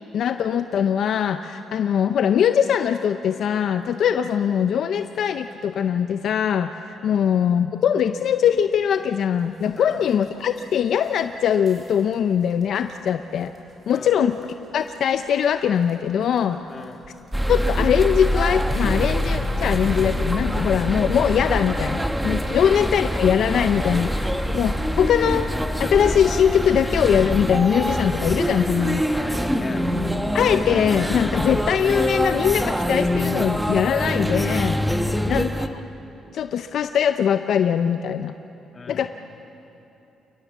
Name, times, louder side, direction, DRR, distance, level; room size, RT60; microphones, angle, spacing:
voice 1, 0.1-13.5 13.9-16.6 17.5-25.5 25.8-29.1 30.3-34.8 35.3-35.7 36.3-38.3 38.9-39.1, left 8 dB, 70° left, 9 dB, 0.6 m, -21 dB
sound 1, 9.3-25.9, right 1 dB, 35° right, 5.8 m, -43 dB
voice 2, 16.7-17.0 22.6-22.7 29.1-29.9 35.1-35.4 38.7-39.1, left 4 dB, 35° left, 5 dB, 1.8 m, -40 dB
sound 2, 17.3-35.7, equal, 5° right, 1.2 m, -24 dB
28.5 x 19.5 x 7.3 m, 2.9 s
cardioid pair, 90°, 0 cm